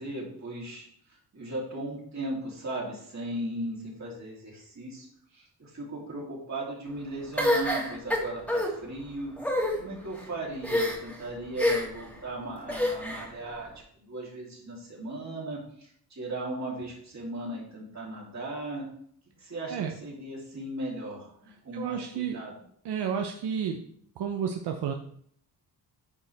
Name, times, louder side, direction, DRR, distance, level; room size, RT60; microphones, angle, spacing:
voice 1, 0.0-5.1 5.3-13.7 14.0-18.9 19.4-22.5, right 2 dB, 45° right, -3 dB, 3.2 m, -37 dB
sound 1, 7.4-8.7 9.4-9.7 10.6-11.1 11.6-12.0 12.7-13.3, left 1 dB, 5° left, 2.0 m, -26 dB
voice 2, 21.7-22.4 22.8-23.8 24.2-24.9, right 7 dB, 80° right, 4 dB, 0.8 m, -31 dB
10.5 x 4.9 x 3.4 m, 0.64 s
cardioid pair, 90°, 40 cm